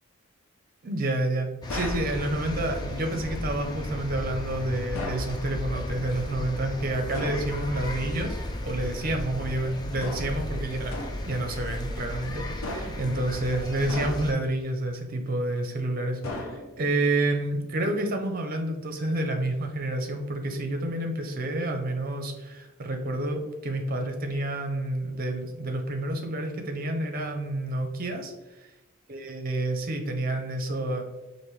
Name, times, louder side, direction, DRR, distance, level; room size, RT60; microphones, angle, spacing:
voice 1, 0.8-8.4 8.6-11.0 11.3-28.3 28.6-28.7 29.1-31.0, right 1 dB, 40° right, 4 dB, 0.6 m, -29 dB
sound 1, 1.6-14.3, left 1 dB, 20° left, 0.4 m, -34 dB
sound 2, 1.7-2.1 4.9-5.3 7.1-7.5 10.0-10.4 10.9-11.3 12.6-13.1 13.9-14.5 16.2-16.9, left 2 dB, 75° left, 0.7 m, -36 dB
5.1 x 2.6 x 3.1 m, 1.0 s
head